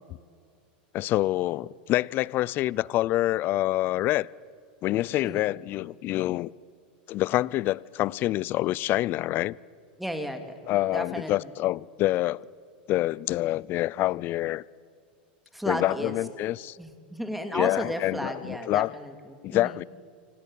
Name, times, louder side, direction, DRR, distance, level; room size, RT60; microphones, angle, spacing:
voice 1, 0.9-4.3 4.8-6.5 7.1-9.6 10.7-12.5 12.9-14.6 15.7-16.8 17.5-18.9 19.4-19.8, left 16 dB, 40° left, 0.5 m, -26 dB
voice 2, 10.0-10.4 10.9-11.3 15.5-16.1 16.8-19.8, equal, ahead, 2.5 m, -33 dB
25.5 x 18.0 x 8.8 m
supercardioid pair, 120°, 5 cm